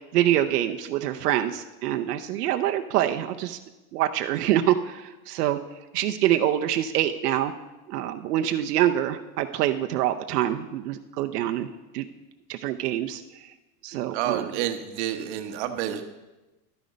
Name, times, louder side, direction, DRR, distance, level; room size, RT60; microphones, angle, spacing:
voice 1, 0.1-3.6 3.9-5.6 5.9-7.5 7.9-11.7 11.9-12.1 12.5-13.2 13.8-14.5, right 12 dB, 80° right, 6 dB, 0.8 m, -25 dB
voice 2, 14.1-16.1, right 11 dB, 45° right, 6 dB, 1.1 m, -29 dB
12.0 x 9.3 x 5.1 m, 1.1 s
supercardioid pair, 170°, 46 cm